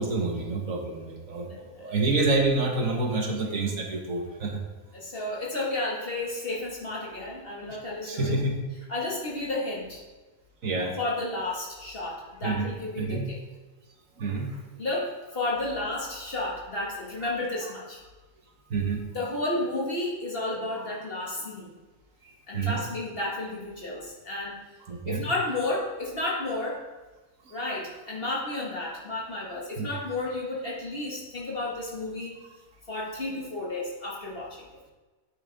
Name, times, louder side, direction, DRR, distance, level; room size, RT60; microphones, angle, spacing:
voice 1, 0.0-4.6 8.0-8.6 10.6-10.9 12.4-12.7 13.0-13.3 14.2-14.6 18.7-19.0 22.5-22.8 24.9-25.2 29.8-29.9, right 3 dB, 65° right, 2 dB, 1.6 m, -28 dB
voice 2, 4.9-8.3 8.9-10.0 10.7-13.4 14.8-18.0 19.1-21.7 22.5-24.6 25.1-26.8 27.5-32.4 32.9-34.7, left 2 dB, 40° left, -4 dB, 2.2 m, -32 dB
9.2 x 8.9 x 3.6 m, 1.3 s
omnidirectional pair, 1.5 m